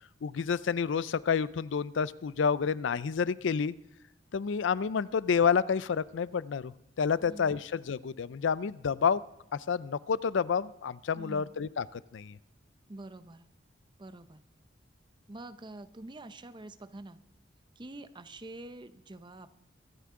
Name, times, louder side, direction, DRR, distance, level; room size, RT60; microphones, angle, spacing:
voice 1, 0.2-3.7 4.3-9.2 9.5-12.4, left 6 dB, 80° left, 18 dB, 0.4 m, -29 dB
voice 2, 7.2-7.7 11.2-11.5 12.9-13.5 14.0-14.4 15.3-17.2 17.8-19.6, right 2 dB, 25° right, 12 dB, 0.7 m, -46 dB
24.0 x 9.5 x 3.7 m, 0.81 s
head